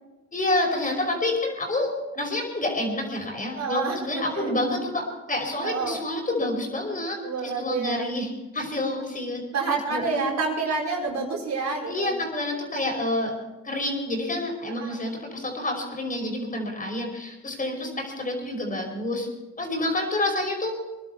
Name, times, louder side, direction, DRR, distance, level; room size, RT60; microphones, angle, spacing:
voice 1, 0.3-9.4 9.9-10.3 11.9-13.4 13.6-19.3 19.6-20.8, left 1 dB, 25° left, 2 dB, 5.2 m, -28 dB
voice 2, 3.5-4.5 5.6-6.0 7.2-8.1 9.5-12.1 14.8-14.9, right 4 dB, 60° right, 0 dB, 4.8 m, -28 dB
23.0 x 11.5 x 4.6 m, 1.1 s
cardioid pair, 90°, 30 cm